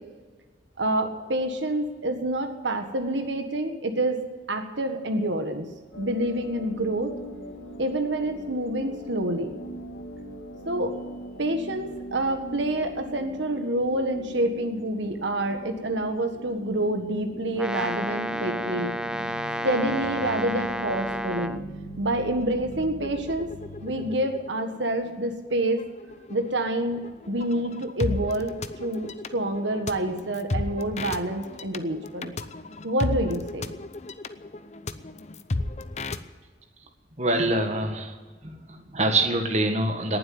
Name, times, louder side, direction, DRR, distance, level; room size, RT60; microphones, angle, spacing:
voice 1, 0.8-4.2 4.5-5.6 6.0-7.1 7.8-9.5 10.6-10.9 11.4-18.9 19.6-21.6 22.0-23.5 23.8-25.8 26.3-28.5 28.8-32.3 32.8-33.6, right 1 dB, 75° right, 6 dB, 1.6 m, -27 dB
sound 1, 5.9-24.0, equal, 85° left, 1.8 m, -40 dB
Brass instrument, 17.5-21.6, equal, 5° right, 0.4 m, -31 dB
sound 2, 21.5-21.6 21.9-36.2, left 2 dB, 35° left, 0.7 m, -35 dB
voice 2, 37.2-38.2 38.4-40.2, right 2 dB, 35° right, 4 dB, 1.7 m, -25 dB
19.0 x 7.8 x 9.4 m, 1.4 s
head